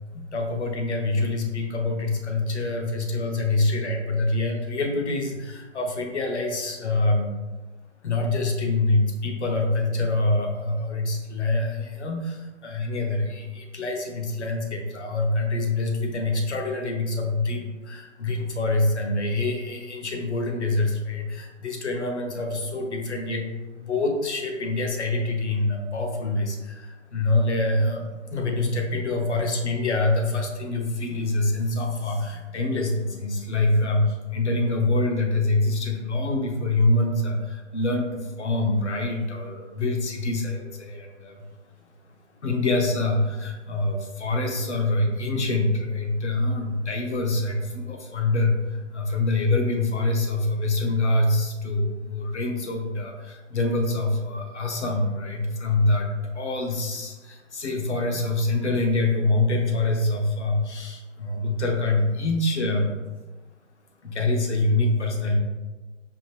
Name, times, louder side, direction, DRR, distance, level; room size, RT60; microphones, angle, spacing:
voice 1, 0.1-7.3 8.0-23.5 23.7-41.4 42.4-62.9 64.0-65.4, left 2 dB, 60° left, 2 dB, 1.0 m, -25 dB
5.0 x 2.7 x 3.3 m, 1.2 s
figure-of-eight pair, 150°, 38 cm